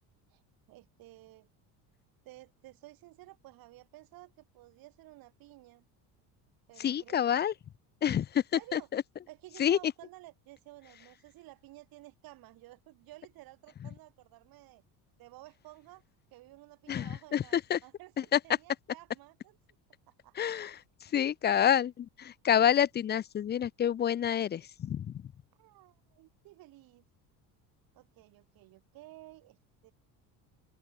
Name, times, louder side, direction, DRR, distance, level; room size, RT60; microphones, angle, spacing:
voice 1, 0.7-1.5 2.2-5.8 6.7-7.2 8.5-8.9 9.3-14.8 15.2-16.0 16.3-19.6 20.1-20.6 25.6-27.0 27.9-29.6 29.8-29.9, right 18 dB, 60° right, 4.3 m, -53 dB
voice 2, 6.8-7.5 8.0-8.4 8.7-9.0 9.6-9.8 16.9-17.8 18.3-18.4 20.4-20.7 21.1-25.1, left 9 dB, 25° left, 0.6 m, -28 dB
open air
cardioid pair, 145°, 40 cm